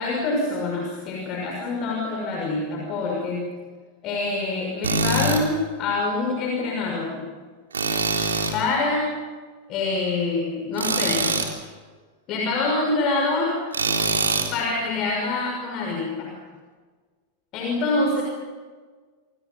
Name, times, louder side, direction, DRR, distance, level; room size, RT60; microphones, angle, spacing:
voice 1, 0.0-3.5 4.0-7.3 8.5-9.1 9.7-11.4 12.3-13.6 14.5-16.3 17.5-18.2, left 3 dB, 35° left, 0 dB, 6.0 m, -25 dB
Tools, 4.8-5.4 7.7-8.6 10.8-11.5 13.7-14.5, right 3 dB, 70° right, 3.6 m, -23 dB
29.0 x 28.0 x 5.6 m, 1.5 s
figure-of-eight pair, 90°, 0 cm